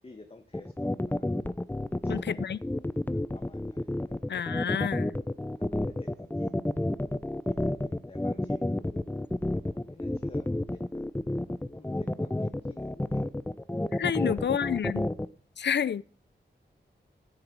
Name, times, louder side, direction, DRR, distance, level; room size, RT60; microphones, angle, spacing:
voice 1, 0.0-1.3 2.0-2.7 3.1-4.3 5.6-6.6 7.3-9.3 9.7-11.0 11.7-13.2 14.2-14.8, left 3 dB, 30° left, 1.3 m, -51 dB
sound 1, 0.5-15.3, left 1 dB, 10° left, 0.6 m, -30 dB
voice 2, 2.1-2.6 4.3-5.1 14.0-15.1 15.6-16.0, left 8 dB, 70° left, 0.5 m, -29 dB
13.0 x 10.0 x 4.7 m
wide cardioid pair, 75°, 19 cm